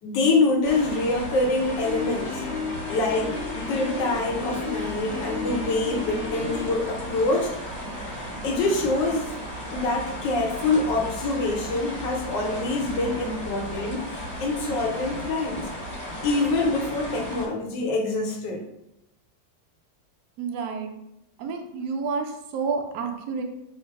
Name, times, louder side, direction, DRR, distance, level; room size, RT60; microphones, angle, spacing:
voice 1, 0.0-2.4 2.9-7.5 8.4-9.3 9.7-15.7 16.2-18.7, left 3 dB, 75° left, 1 dB, 1.6 m, -25 dB
sound 1, 0.6-17.5, equal, 25° right, 1.3 m, -35 dB
Piano, 1.6-6.8, left 4 dB, 55° left, 1.0 m, -33 dB
voice 2, 20.4-20.9 21.4-22.3 22.5-23.4, right 5 dB, 70° right, 3 dB, 1.2 m, -29 dB
5.0 x 2.2 x 4.6 m, 0.83 s
omnidirectional pair, 2.0 m